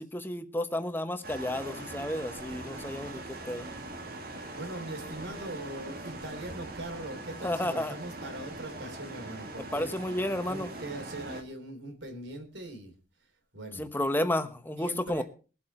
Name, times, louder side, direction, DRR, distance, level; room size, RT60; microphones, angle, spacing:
voice 1, 0.0-3.7 7.4-7.9 9.7-10.7 13.8-15.2, left 1 dB, 10° left, 9 dB, 1.0 m, -32 dB
sound 1, 1.2-11.4, right 2 dB, 55° right, 2.3 m, -41 dB
voice 2, 4.5-9.9 10.5-12.9 13.5-13.9 14.8-15.2, right 1 dB, 75° right, 4 dB, 3.6 m, -41 dB
21.5 x 8.0 x 4.3 m, 0.36 s
head